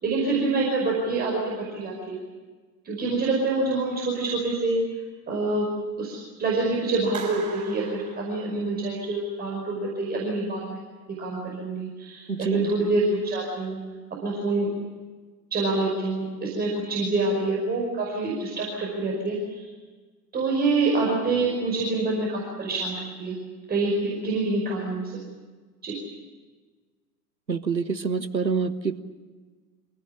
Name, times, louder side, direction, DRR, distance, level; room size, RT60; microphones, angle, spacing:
voice 1, 0.0-2.2 2.8-4.8 5.3-5.7 6.0-10.8 11.2-13.8 14.2-14.7 15.5-19.7 20.3-23.4 23.7-25.0 25.8-25.9, right 3 dB, 20° right, -3 dB, 5.4 m, -26 dB
Clapping, 7.1-9.0, right 5 dB, 55° right, 7.2 m, -40 dB
voice 2, 12.3-12.7 27.5-29.0, right 5 dB, 90° right, 12 dB, 1.4 m, -26 dB
25.5 x 17.5 x 9.9 m, 1.4 s
figure-of-eight pair, 95°, 50 cm